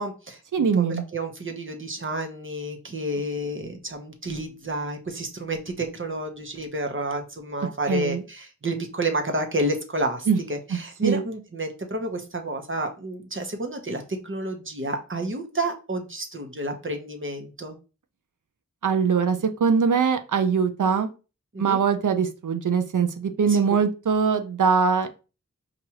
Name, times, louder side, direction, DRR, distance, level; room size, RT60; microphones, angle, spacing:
voice 1, 0.0-17.8 21.5-21.8 23.5-23.6, right 1 dB, 40° right, 4 dB, 0.9 m, -30 dB
voice 2, 0.5-1.0 7.9-8.2 10.3-10.4 11.0-11.2 18.8-21.1 21.6-25.1, right 6 dB, 75° right, 8 dB, 0.5 m, -22 dB
4.7 x 2.5 x 2.9 m, 0.32 s
wide cardioid pair, 45°, 31 cm